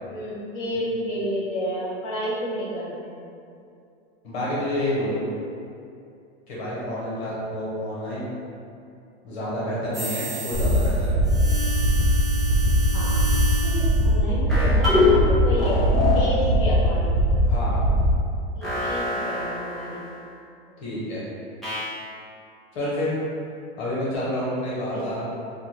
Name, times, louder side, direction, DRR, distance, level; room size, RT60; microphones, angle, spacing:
voice 1, 0.1-3.3 12.9-13.2 13.6-15.8 16.1-17.3 18.6-20.0 20.7-20.8 24.9-25.0, equal, 40° left, -7 dB, 1.0 m, -30 dB
voice 2, 4.2-5.2 6.5-8.3 9.2-11.2 17.5-17.8 20.8-21.2 22.7-23.1 23.8-25.2, left 1 dB, 75° left, -8 dB, 1.4 m, -28 dB
sound 1, 9.9-11.0 11.2-14.0 14.5-15.2 15.6-16.4 18.6-20.1 21.6-22.0, left 2 dB, ahead, 0.7 m, -26 dB
sound 2, 10.5-18.1, equal, 85° right, 0.7 m, -21 dB
3.5 x 2.4 x 2.9 m, 2.5 s
supercardioid pair, 145°, 32 cm